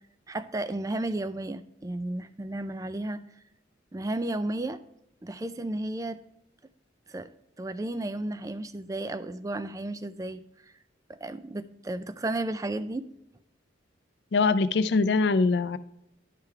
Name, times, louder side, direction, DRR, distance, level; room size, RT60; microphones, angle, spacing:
voice 1, 0.3-3.2 3.9-4.8 5.2-6.2 7.1-7.3 7.6-10.4 11.1-13.1, right 2 dB, 20° right, 13 dB, 0.4 m, -33 dB
voice 2, 14.3-15.8, left 4 dB, 60° left, 13 dB, 0.4 m, -23 dB
11.0 x 3.7 x 4.4 m, 0.84 s
head